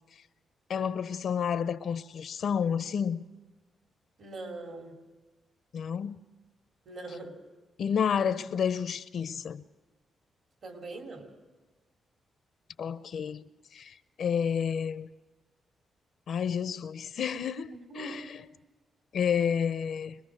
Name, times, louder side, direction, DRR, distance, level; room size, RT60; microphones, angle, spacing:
voice 1, 0.7-3.2 5.7-6.2 7.8-9.6 12.8-13.4 13.7-15.1 16.3-18.4 19.1-20.2, left 7 dB, 70° left, 0.7 m, -30 dB
voice 2, 4.2-5.0 6.9-7.3 10.6-11.2 17.7-18.1, right 2 dB, 65° right, 3.6 m, -41 dB
24.0 x 21.0 x 6.4 m
cardioid pair, 70°, 0 cm